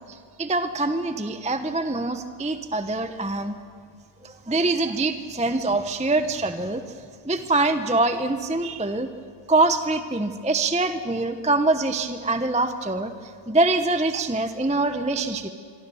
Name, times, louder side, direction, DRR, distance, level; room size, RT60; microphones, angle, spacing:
voice 1, 0.1-3.5 4.2-6.8 7.2-9.1 9.5-15.5, right 2 dB, 5° right, 9 dB, 0.8 m, -24 dB
26.5 x 23.0 x 7.1 m, 2.2 s
omnidirectional pair, 1.5 m